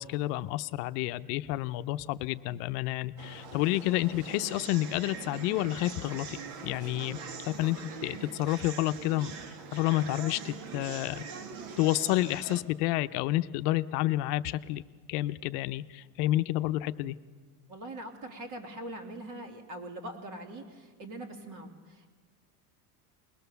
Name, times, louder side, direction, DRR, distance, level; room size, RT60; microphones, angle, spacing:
voice 1, 0.0-6.4 6.6-7.2 7.5-9.3 9.7-11.2 11.8-14.8 15.1-17.2, left 16 dB, 70° left, 11 dB, 0.7 m, -30 dB
sound 1, 3.2-12.6, right 6 dB, 55° right, 1.7 m, -43 dB
voice 2, 17.7-22.1, right 1 dB, 40° right, 3 dB, 2.9 m, -42 dB
21.0 x 20.5 x 6.9 m, 1.4 s
cardioid pair, 160°, 48 cm